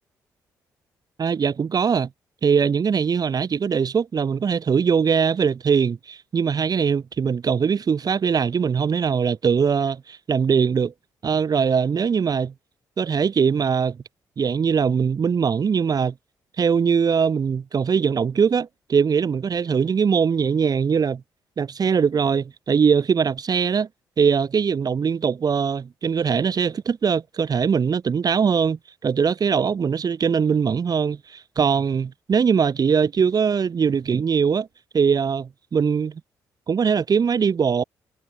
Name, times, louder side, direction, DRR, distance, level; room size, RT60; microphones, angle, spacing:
voice 1, 1.2-2.1 2.4-10.9 11.2-12.5 13.0-14.0 14.4-16.1 16.6-21.2 21.6-23.9 24.2-34.7 34.9-36.2 36.7-37.8, right 6 dB, 50° right, 7.3 m, -21 dB
hypercardioid pair, 45°, 9 cm